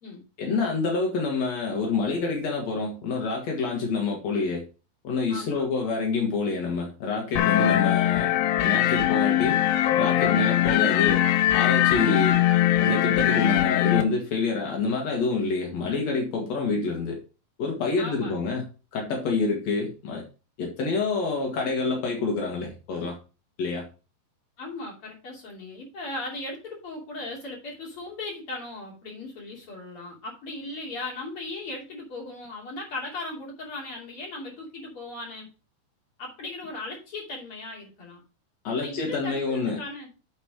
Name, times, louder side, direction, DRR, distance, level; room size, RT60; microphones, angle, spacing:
voice 1, 0.4-4.7 5.0-9.6 9.9-11.3 11.5-12.5 12.8-17.2 17.6-18.6 18.9-20.2 20.6-23.2 23.6-23.9 38.6-39.8, left 4 dB, 70° left, 0 dB, 1.6 m, -27 dB
voice 2, 5.3-5.7 18.0-18.5 24.6-35.5 36.2-38.2 38.8-40.1, left 2 dB, 35° left, -2 dB, 2.9 m, -37 dB
sound 1, 7.4-14.0, left 13 dB, 90° left, 3.2 m, -21 dB
8.1 x 5.1 x 4.8 m, 0.33 s
omnidirectional pair, 5.3 m